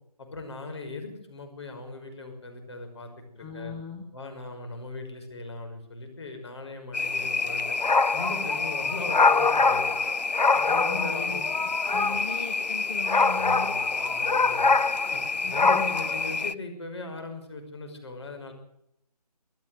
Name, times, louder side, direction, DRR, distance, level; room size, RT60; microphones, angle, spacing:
voice 1, 0.2-3.7 4.1-7.8 8.1-10.0 10.5-11.5 11.9-12.2 13.3-14.7 15.1-15.2 15.5-18.5, left 2 dB, 40° left, 5 dB, 5.9 m, -39 dB
voice 2, 3.4-4.0 10.8-11.4 11.9-13.7 15.4-16.0, left 4 dB, 10° left, 3 dB, 1.2 m, -37 dB
sound 1, 6.9-16.5, left 4 dB, 85° left, 0.8 m, -24 dB
25.0 x 14.5 x 7.9 m, 0.76 s
figure-of-eight pair, 165°, 21 cm